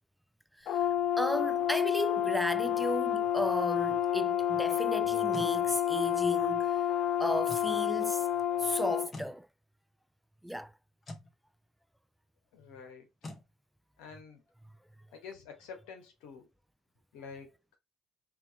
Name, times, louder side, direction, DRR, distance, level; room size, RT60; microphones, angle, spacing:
voice 1, 0.6-0.9 1.2-6.8 7.2-8.3 8.6-9.5 10.4-10.7, equal, ahead, 0.3 m, -34 dB
Brass instrument, 0.7-9.1, left 11 dB, 65° left, 0.4 m, -29 dB
sound 1, 5.0-5.6 7.4-7.7 9.1-9.4 11.0-11.3 13.2-13.5, left 2 dB, 35° left, 1.2 m, -44 dB
voice 2, 12.5-13.1 14.0-14.4 15.1-16.5 17.1-17.6, left 5 dB, 85° left, 1.5 m, -48 dB
4.9 x 2.9 x 3.0 m
supercardioid pair, 80°, 0 cm